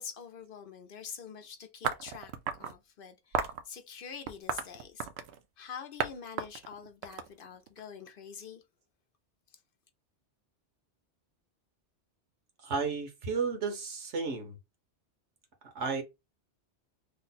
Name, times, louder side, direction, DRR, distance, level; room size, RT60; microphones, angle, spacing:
voice 1, 0.0-2.3 2.6-5.1 5.6-8.6, left 6 dB, 60° left, 0.7 m, -45 dB
sound 1, 1.8-2.7 3.3-3.6 4.3-5.4 6.0-6.1 6.4-7.8, right 7 dB, 75° right, 0.8 m, -34 dB
voice 2, 12.6-14.6 15.7-16.0, right 4 dB, 90° right, 1.3 m, -33 dB
3.2 x 2.1 x 4.0 m
omnidirectional pair, 1.1 m